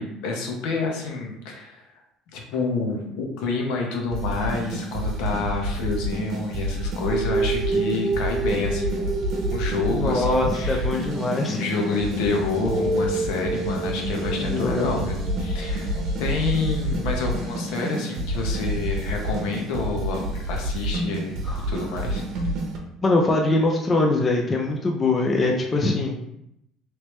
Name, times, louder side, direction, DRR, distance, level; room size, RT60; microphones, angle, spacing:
voice 1, 0.0-1.8 2.3-9.2 9.5-10.9 11.5-21.4 21.7-22.2, left 4 dB, 75° left, 1 dB, 0.8 m, -28 dB
sound 1, 4.1-22.8, right 1 dB, 55° right, 0.7 m, -29 dB
sound 2, 7.1-20.2, right 2 dB, 20° right, 0.8 m, -31 dB
voice 2, 9.9-11.6 14.4-14.9 21.5-21.6 23.0-26.2, left 2 dB, 20° left, 1 dB, 0.4 m, -23 dB
3.2 x 3.1 x 3.1 m, 0.79 s
cardioid pair, 155°, 0 cm